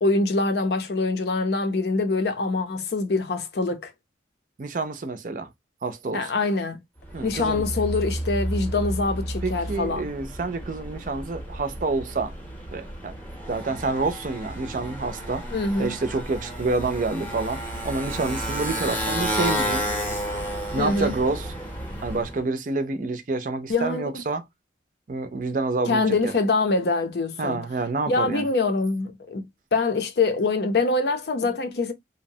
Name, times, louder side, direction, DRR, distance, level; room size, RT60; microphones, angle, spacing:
voice 1, 0.0-3.9 6.1-6.8 7.2-10.1 15.5-15.9 20.8-21.2 23.7-24.2 25.9-27.6 28.1-31.9, left 3 dB, 65° left, 0.6 m, -24 dB
voice 2, 4.6-5.5 5.8-6.3 7.1-7.6 9.4-12.3 12.7-13.1 13.5-15.4 15.8-19.8 20.7-21.5 22.0-24.4 25.1-26.3 27.4-28.4, right 3 dB, 45° right, 0.4 m, -28 dB
Motorcycle, 7.0-22.4, equal, 10° left, 0.7 m, -31 dB
2.7 x 2.1 x 2.7 m
head